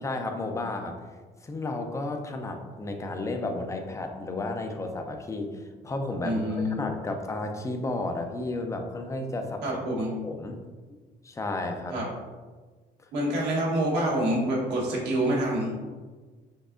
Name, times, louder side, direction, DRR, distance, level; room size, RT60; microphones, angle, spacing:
voice 1, 0.0-1.0 1.4-9.6 10.2-10.6 11.2-12.0, left 2 dB, 15° left, 4 dB, 0.5 m, -32 dB
voice 2, 6.2-6.7 9.6-10.1 11.9-12.0 13.1-15.7, right 1 dB, 80° right, -4 dB, 1.4 m, -26 dB
5.4 x 3.4 x 2.6 m, 1.4 s
cardioid pair, 110°, 17 cm